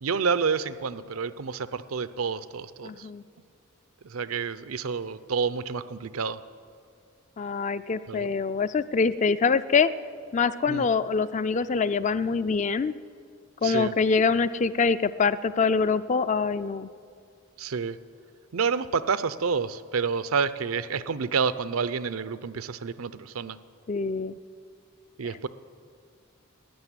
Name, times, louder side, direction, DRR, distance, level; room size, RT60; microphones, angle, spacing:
voice 1, 0.0-3.1 4.0-6.4 8.1-8.3 10.7-10.9 13.6-13.9 17.6-18.0 18.5-23.6 25.2-25.5, right 5 dB, 85° right, 14 dB, 0.6 m, -29 dB
voice 2, 2.8-3.2 7.4-9.9 10.3-12.9 13.6-16.9 23.9-24.3, left 5 dB, 35° left, 14 dB, 0.4 m, -24 dB
13.5 x 10.0 x 9.7 m, 2.2 s
head